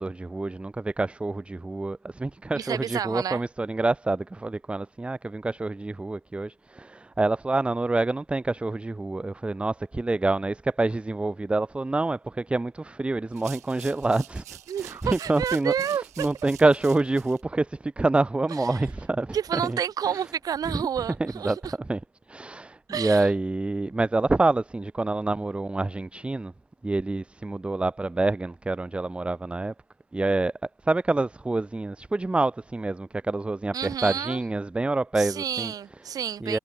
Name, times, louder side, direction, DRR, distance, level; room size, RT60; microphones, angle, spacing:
voice 1, 0.0-14.4 14.8-15.7 16.2-19.4 19.7-19.8 20.7-20.8 21.2-22.0 22.3-26.5 26.8-29.7 30.1-30.5 30.9-35.7 36.4-36.6, right 2 dB, 15° right, 0.7 m, -27 dB
voice 2, 2.5-3.4 14.7-16.3 18.5-18.8 19.3-21.7 22.9-23.3 33.7-34.4 35.2-36.6, right 9 dB, 45° right, 1.5 m, -30 dB
sound 1, 13.3-17.4, right 14 dB, 75° right, 7.4 m, -47 dB
figure-of-eight pair, 45°, 9 cm